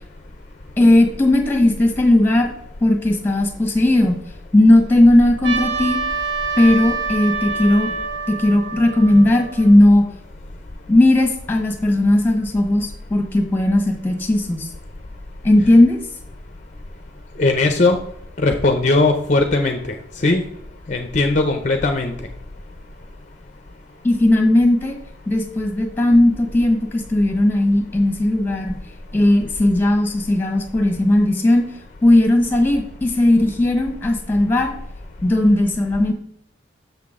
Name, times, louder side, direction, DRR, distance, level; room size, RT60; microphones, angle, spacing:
voice 1, 0.8-2.5 2.8-4.2 4.5-6.0 6.6-7.9 8.3-10.0 10.9-14.7 15.4-16.0 24.0-25.0 25.3-28.7 29.1-31.6 32.0-34.7 35.2-36.1, left 1 dB, 10° left, 4 dB, 1.3 m, -16 dB
Trumpet, 5.4-9.9, right 4 dB, 70° right, 1.6 m, -26 dB
voice 2, 17.4-18.0 18.4-19.8 20.2-20.4 20.9-22.1, left 2 dB, 40° left, 5 dB, 0.6 m, -18 dB
7.1 x 5.9 x 3.6 m, 0.73 s
head